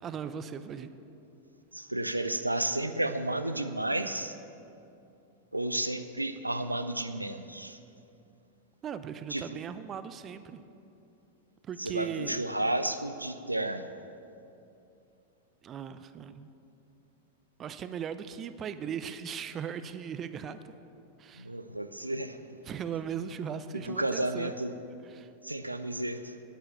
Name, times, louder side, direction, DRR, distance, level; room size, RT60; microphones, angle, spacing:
voice 1, 0.0-0.9 8.8-10.6 11.6-12.4 15.6-16.5 17.6-20.7 21.2-21.5 22.6-24.5 25.0-25.3, right 8 dB, 25° right, 12 dB, 0.5 m, -38 dB
voice 2, 1.7-4.4 5.5-7.8 9.3-9.5 11.8-13.9 21.4-22.4 23.9-24.7 25.4-26.4, right 1 dB, 85° right, 9 dB, 0.5 m, -32 dB
9.6 x 9.2 x 7.7 m, 2.7 s
figure-of-eight pair, 90°, 0 cm